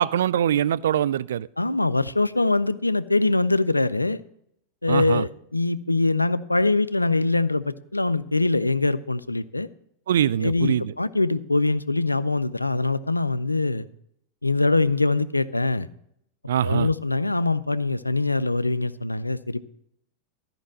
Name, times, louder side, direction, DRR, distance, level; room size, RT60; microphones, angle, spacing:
voice 1, 0.0-1.5 4.9-5.2 10.1-10.9 16.5-16.9, right 10 dB, 60° right, 0.3 m, -23 dB
voice 2, 1.6-4.2 4.8-9.7 10.4-13.9 14.4-15.9 16.6-19.6, left 2 dB, 85° left, 0.4 m, -23 dB
13.5 x 5.3 x 7.3 m
figure-of-eight pair, 90°, 0 cm